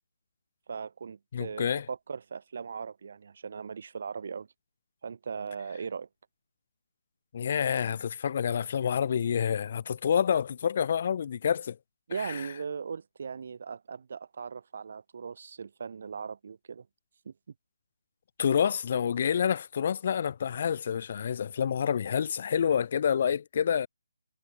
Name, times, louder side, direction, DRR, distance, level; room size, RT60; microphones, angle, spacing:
voice 1, 0.7-4.5 5.0-6.1 12.1-16.9 17.3-17.4, right 6 dB, 50° right, 0.6 m, -38 dB
voice 2, 1.3-1.9 7.3-11.8 12.2-12.5 18.4-23.9, left 8 dB, 40° left, 0.7 m, -28 dB
figure-of-eight pair, 155°, 0 cm